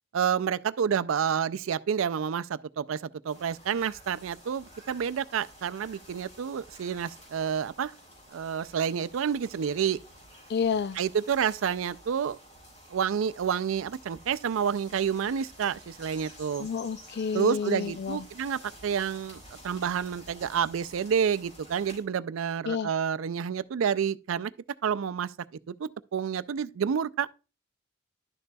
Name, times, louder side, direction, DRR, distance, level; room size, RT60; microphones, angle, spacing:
voice 1, 0.1-7.9 8.3-10.0 11.0-12.4 12.9-16.7 17.3-24.5 24.8-25.3 25.7-27.3, right 7 dB, 85° right, 0.4 m, -29 dB
sound 1, 3.3-22.0, equal, 35° left, 4.4 m, -51 dB
voice 2, 10.5-11.0 16.6-18.3 22.7-22.9, left 6 dB, 55° left, 0.4 m, -30 dB
11.5 x 6.6 x 2.3 m
head